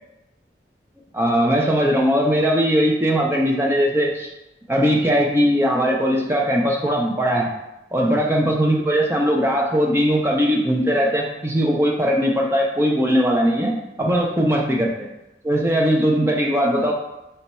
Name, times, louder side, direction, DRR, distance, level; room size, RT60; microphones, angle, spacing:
voice 1, 1.1-4.3 4.7-7.5 7.9-15.1 15.4-16.9, equal, 15° right, -1 dB, 0.5 m, -19 dB
4.1 x 2.3 x 4.1 m, 0.92 s
head